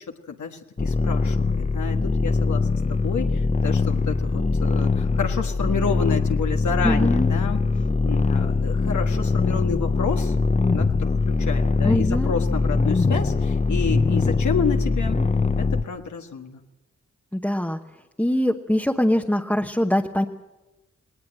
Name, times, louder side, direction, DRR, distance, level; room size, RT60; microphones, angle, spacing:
voice 1, 0.3-7.6 8.0-10.3 10.7-15.2 15.6-16.6, left 6 dB, 85° left, 3 dB, 1.6 m, -30 dB
sound 1, 0.8-15.8, left 4 dB, 25° left, 0.8 m, -22 dB
voice 2, 6.8-7.4 11.8-12.3 17.3-17.8 18.2-20.3, left 1 dB, 5° left, 3 dB, 1.0 m, -23 dB
19.0 x 19.0 x 7.6 m, 1.0 s
cardioid pair, 70°, 29 cm